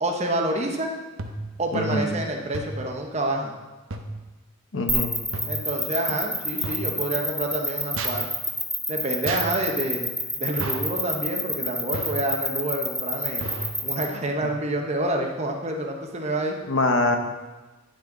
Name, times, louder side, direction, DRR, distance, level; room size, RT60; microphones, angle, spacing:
voice 1, 0.0-0.9 1.6-3.5 5.4-8.3 8.9-10.1 10.4-13.5 13.8-16.6, right 1 dB, 35° right, 2 dB, 0.9 m, -28 dB
sound 1, 1.2-1.6 2.5-2.9 3.9-4.2 5.3-5.6 6.6-7.0 8.0-8.2 9.3-9.6 10.6-10.9 11.9-12.3 13.4-13.8, right 2 dB, 75° right, 0.8 m, -32 dB
voice 2, 1.7-2.1 4.7-5.1 16.7-17.2, left 2 dB, 75° left, 5 dB, 0.9 m, -23 dB
sound 2, 4.9-14.0, left 1 dB, 5° left, 0.9 m, -27 dB
10.0 x 6.0 x 3.9 m, 1.2 s
head